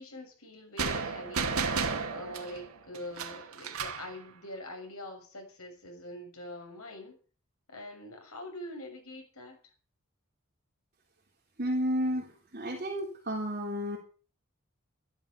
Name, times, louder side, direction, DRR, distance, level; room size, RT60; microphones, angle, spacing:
voice 1, 0.0-1.6 2.1-7.2 7.7-9.6, left 1 dB, 85° left, 3 dB, 6.7 m, -44 dB
sound 1, 0.8-4.1, right 5 dB, 85° right, 2.1 m, -33 dB
voice 2, 11.6-14.0, equal, 40° right, -4 dB, 3.8 m, -32 dB
13.5 x 12.0 x 6.9 m, 0.38 s
head